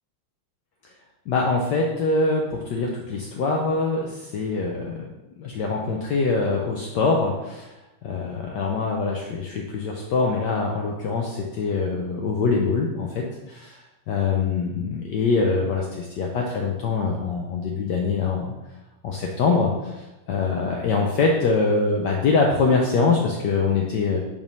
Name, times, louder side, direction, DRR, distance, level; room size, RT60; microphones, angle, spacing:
voice 1, 1.3-5.1 5.4-7.7 8.0-13.8 14.1-18.5 19.0-24.2, left 4 dB, 70° left, 0 dB, 1.2 m, -24 dB
5.1 x 3.5 x 5.2 m, 0.98 s
omnidirectional pair, 2.1 m